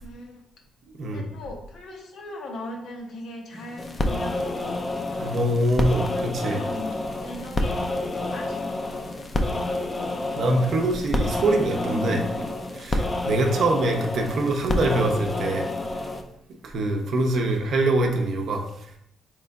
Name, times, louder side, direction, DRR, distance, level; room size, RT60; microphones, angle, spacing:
voice 1, 0.0-0.4 1.0-4.7 6.1-6.9 7.2-7.9 8.2-9.1 13.5-13.7, left 1 dB, 70° left, 0 dB, 0.7 m, -40 dB
sound 1, 3.5-12.5, left 1 dB, 90° left, 1.1 m, -39 dB
sound 2, 3.8-16.2, left 2 dB, 30° left, 0.4 m, -28 dB
voice 2, 5.2-6.6 10.4-12.3 12.7-15.6 16.6-18.6, right 2 dB, 65° right, 2 dB, 0.6 m, -24 dB
3.5 x 3.0 x 2.3 m, 0.74 s
cardioid pair, 90°, 0 cm